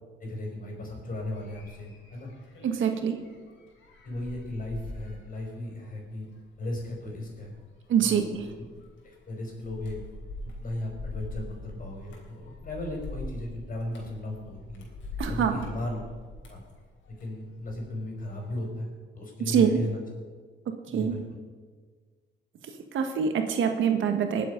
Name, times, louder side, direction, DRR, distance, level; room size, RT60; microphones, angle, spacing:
voice 1, 0.2-2.3 4.0-6.3 6.6-7.5 8.0-8.2 9.0-10.0 10.6-14.9 15.3-16.0 16.5-16.6 17.2-18.9 19.2-20.0 20.9-21.2, left 1 dB, 45° left, 0 dB, 5.1 m, -36 dB
sound 1, 1.1-17.8 18.2-18.6, left 2 dB, 75° left, 3.5 m, -43 dB
voice 2, 2.6-3.2 7.9-8.5 15.2-15.5 19.5-19.8 20.9-21.2 22.9-24.4, right 7 dB, 75° right, 6 dB, 1.5 m, -25 dB
20.5 x 7.7 x 5.2 m, 1.5 s
cardioid pair, 90°, 20 cm